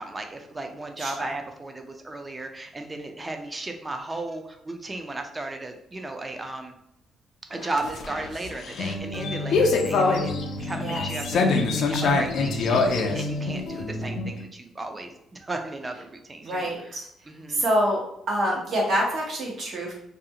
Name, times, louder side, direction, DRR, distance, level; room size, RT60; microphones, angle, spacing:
voice 1, 0.0-6.7 7.5-10.3 10.6-17.0 17.3-17.6, right 2 dB, 20° right, 5 dB, 0.5 m, -35 dB
sound 1, 7.6-14.4, left 3 dB, 70° left, 0.4 m, -25 dB
voice 2, 16.4-17.1 17.5-18.0 18.3-19.9, equal, 60° right, -2 dB, 1.0 m, -26 dB
2.5 x 2.4 x 2.8 m, 0.75 s
cardioid pair, 90°, 0 cm